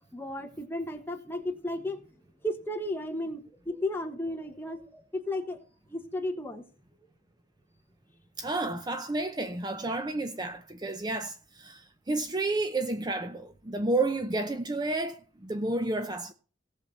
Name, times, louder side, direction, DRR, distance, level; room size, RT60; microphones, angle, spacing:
voice 1, 0.1-2.0 2.4-5.6 5.9-6.6 14.2-14.3, left 1 dB, 10° left, 1.3 m, -34 dB
voice 2, 8.4-16.3, right 2 dB, 20° right, 0.6 m, -31 dB
17.5 x 6.8 x 4.3 m
head